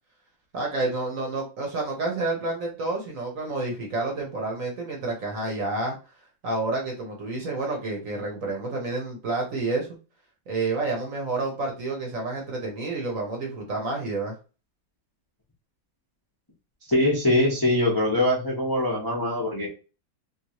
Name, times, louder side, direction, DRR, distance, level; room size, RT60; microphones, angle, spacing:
voice 1, 0.5-6.0 6.4-9.9 10.5-14.3, right 3 dB, 55° right, 0 dB, 1.1 m, -29 dB
voice 2, 16.9-19.7, left 1 dB, 25° left, -4 dB, 0.5 m, -23 dB
3.0 x 2.6 x 2.9 m, 0.33 s
omnidirectional pair, 2.0 m